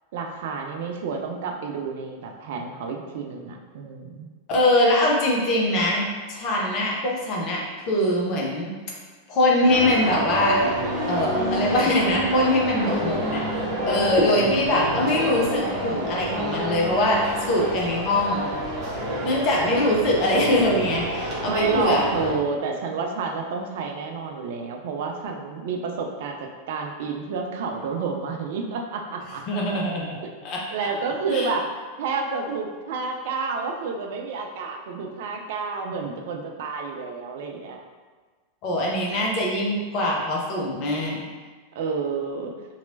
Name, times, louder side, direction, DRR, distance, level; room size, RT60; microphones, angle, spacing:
voice 1, 0.1-4.3 21.5-29.4 30.7-37.8 41.7-42.5, right 4 dB, 55° right, 2 dB, 0.3 m, -30 dB
voice 2, 4.5-8.7 9.3-10.6 11.1-13.4 13.8-17.2 17.5-18.5 19.2-22.1 29.5-30.2 30.4-30.9 31.3-31.5 38.6-41.2, left 1 dB, 40° left, -3 dB, 0.8 m, -22 dB
sound 1, 9.7-22.3, right 1 dB, 30° right, 1.0 m, -28 dB
3.1 x 2.9 x 2.6 m, 1.4 s
figure-of-eight pair, 90°, 0 cm